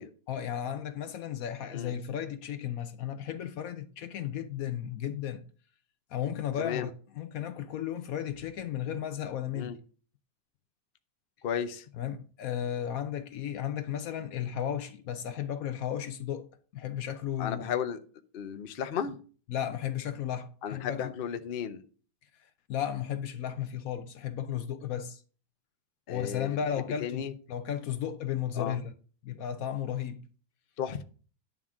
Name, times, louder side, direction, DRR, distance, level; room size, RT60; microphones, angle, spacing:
voice 1, 0.3-5.4 6.1-9.8 12.0-17.7 19.5-21.1 22.7-25.2 26.1-28.9 29.2-30.2, left 9 dB, 70° left, 0.8 m, -34 dB
voice 2, 6.6-6.9 9.5-9.8 11.4-11.9 17.4-18.0 18.3-19.2 20.6-21.8 26.1-26.6 27.0-27.3 28.5-28.8 30.8-31.0, left 8 dB, 85° left, 0.5 m, -34 dB
10.5 x 3.7 x 7.2 m
omnidirectional pair, 2.1 m